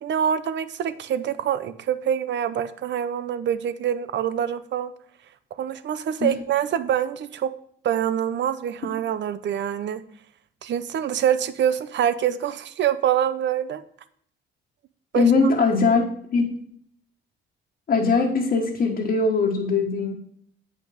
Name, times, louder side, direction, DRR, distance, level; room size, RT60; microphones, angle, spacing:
voice 1, 0.0-4.9 5.6-7.5 7.8-10.0 10.6-13.8 15.1-15.3, right 9 dB, 65° right, 13 dB, 0.7 m, -25 dB
voice 2, 15.1-16.0 16.3-16.4 17.9-20.1, left 4 dB, 50° left, -3 dB, 1.5 m, -20 dB
8.2 x 5.7 x 5.0 m, 0.62 s
cardioid pair, 90°, 20 cm